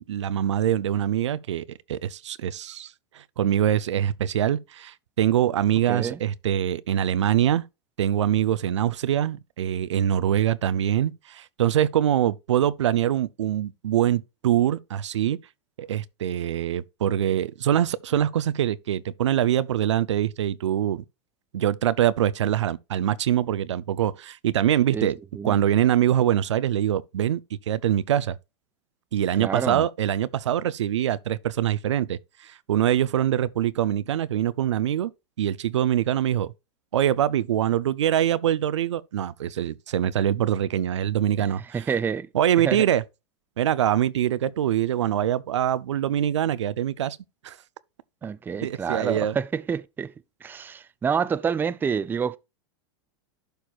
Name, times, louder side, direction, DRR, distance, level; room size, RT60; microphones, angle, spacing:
voice 1, 0.0-7.6 8.0-15.4 15.8-21.0 21.5-25.2 25.4-27.4 27.7-28.4 29.1-35.1 35.4-36.5 36.9-41.9 42.3-43.0 43.6-47.2 47.4-47.6 48.6-49.4, right 11 dB, 90° right, 0.5 m, -24 dB
voice 2, 5.9-6.2 24.9-25.1 25.4-25.6 29.4-29.9 41.7-42.3 42.6-42.8 48.2-50.1 50.4-52.4, right 6 dB, 15° right, 0.4 m, -27 dB
11.5 x 4.5 x 2.3 m
hypercardioid pair, 115°, 15 cm